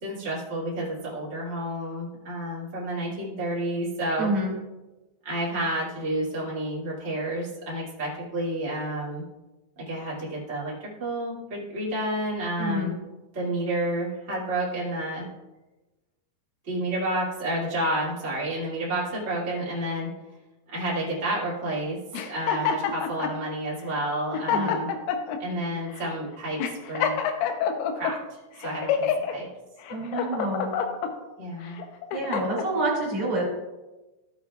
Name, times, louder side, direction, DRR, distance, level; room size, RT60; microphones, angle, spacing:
voice 1, 0.0-4.3 5.2-9.2 9.9-12.9 13.3-15.3 16.6-20.1 20.7-24.9 25.4-27.2 27.9-29.5 31.4-31.8, right 1 dB, 60° right, -7 dB, 0.7 m, -30 dB
voice 2, 4.2-4.5 12.6-12.9 24.5-24.8 29.9-30.7 32.1-33.5, right 1 dB, 40° right, -3 dB, 2.6 m, -27 dB
sound 1, 22.1-23.4 24.0-24.1 24.3-25.4 26.0-26.1 26.6-28.1 28.6-29.3 29.8-31.1 31.7-32.7, left 7 dB, 85° left, 3.3 m, -27 dB
14.5 x 8.1 x 2.3 m, 1.1 s
omnidirectional pair, 5.6 m